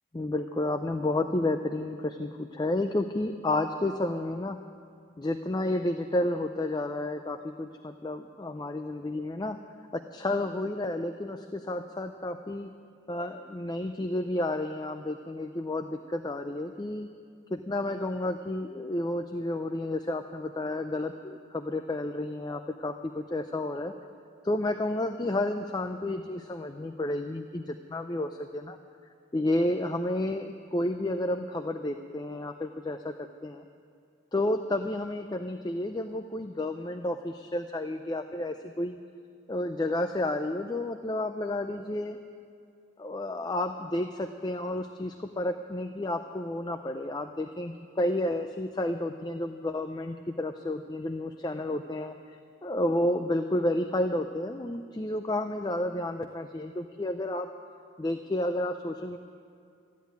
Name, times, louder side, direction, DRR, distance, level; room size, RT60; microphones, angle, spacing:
voice 1, 0.1-4.6 5.2-9.6 9.9-12.7 13.1-17.1 17.5-23.9 24.4-28.8 29.3-33.6 34.3-39.0 39.5-42.2 43.0-52.1 52.6-57.5 58.0-59.2, left 1 dB, 20° left, 6 dB, 0.4 m, -31 dB
14.0 x 10.5 x 9.4 m, 2.4 s
head